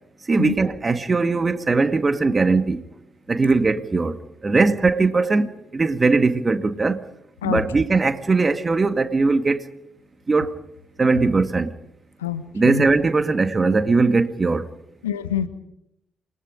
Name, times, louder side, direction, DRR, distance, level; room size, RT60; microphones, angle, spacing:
voice 1, 0.3-2.8 3.3-4.2 4.4-7.0 7.4-9.7 10.3-10.5 11.0-11.7 12.5-14.7, right 3 dB, 30° right, 1.9 m, -20 dB
voice 2, 12.2-12.9 15.0-15.5, left 9 dB, 75° left, 1.3 m, -26 dB
29.0 x 21.5 x 5.1 m
figure-of-eight pair, 40°, 0 cm